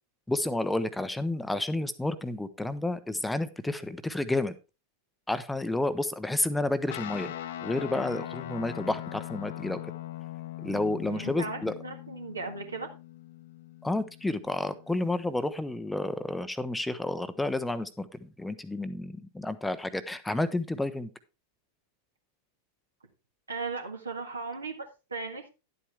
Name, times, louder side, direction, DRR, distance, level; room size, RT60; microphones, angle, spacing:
voice 1, 0.3-4.6 5.3-7.3 7.6-9.8 10.6-11.7 13.8-21.1, left 2 dB, 5° left, 12 dB, 0.7 m, -30 dB
Guitar, 6.9-15.6, left 13 dB, 60° left, 0.8 m, -41 dB
voice 2, 11.1-12.9 23.5-25.5, right 4 dB, 75° right, 5 dB, 1.8 m, -37 dB
11.0 x 8.3 x 3.4 m, 0.30 s
figure-of-eight pair, 90°, 0 cm